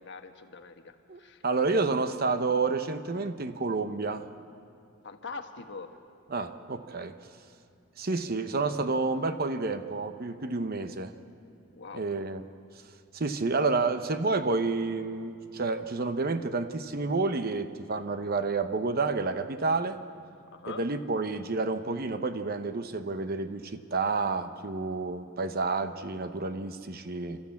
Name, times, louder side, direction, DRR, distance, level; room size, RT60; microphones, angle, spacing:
voice 1, 0.0-1.4 5.0-5.9 11.7-12.1 20.5-20.8, left 4 dB, 55° left, 7 dB, 1.3 m, -43 dB
voice 2, 1.1-4.2 6.3-7.1 8.0-11.1 11.9-12.4 13.1-20.0 20.7-27.4, right 3 dB, 45° right, 10 dB, 0.9 m, -29 dB
28.5 x 13.0 x 8.5 m, 2.6 s
head